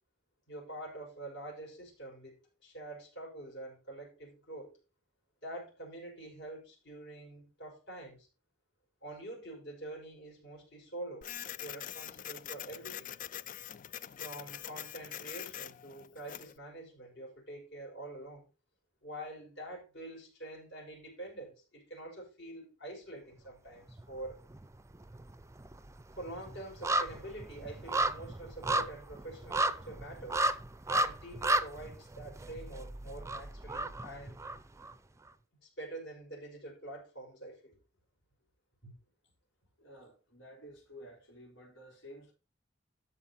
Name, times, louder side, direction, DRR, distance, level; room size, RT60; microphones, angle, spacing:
voice 1, 0.5-4.7 5.4-8.3 9.0-11.3 11.6-13.2 14.2-18.5 19.0-24.4 26.2-30.4 30.9-34.4 35.6-37.8 38.8-38.9, right 1 dB, 65° left, 5.9 m, -46 dB
Printer, 11.2-16.6, left 11 dB, 45° left, 0.4 m, -44 dB
sound 1, 23.9-24.7 24.9-34.9 35.3-35.4, right 1 dB, 15° right, 0.5 m, -34 dB
voice 2, 39.8-42.3, equal, 85° left, 4.8 m, -52 dB
13.0 x 5.0 x 4.3 m
head